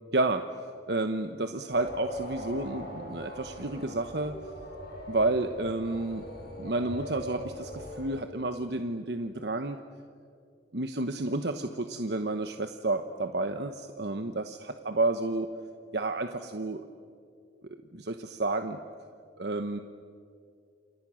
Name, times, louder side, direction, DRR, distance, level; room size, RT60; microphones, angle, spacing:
voice 1, 0.1-0.4 0.9-4.3 5.1-6.3 6.6-9.8 10.7-15.5 15.9-16.8 17.9-18.8 19.4-19.8, right 2 dB, 65° right, 7 dB, 1.1 m, -30 dB
sound 1, 1.7-8.1, equal, 55° left, 6.5 m, -41 dB
28.5 x 28.5 x 6.4 m, 2.3 s
head